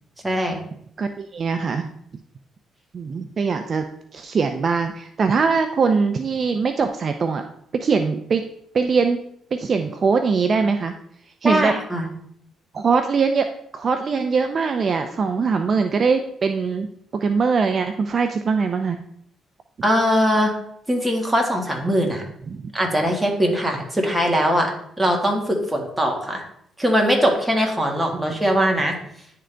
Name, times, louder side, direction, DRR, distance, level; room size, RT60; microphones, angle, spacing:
voice 1, 0.2-0.6 11.4-12.1 19.8-20.5 20.9-22.3 22.7-26.4 26.8-29.0, equal, 10° right, 1 dB, 1.7 m, -21 dB
voice 2, 1.0-1.9 2.9-3.9 4.1-7.4 7.7-8.4 8.7-9.2 9.5-10.9 11.4-11.7 12.7-16.9 17.1-19.0 22.5-22.6 28.1-28.3 28.6-28.8, right 5 dB, 45° right, 7 dB, 0.5 m, -22 dB
10.0 x 3.8 x 3.3 m, 0.69 s
cardioid pair, 90°, 0 cm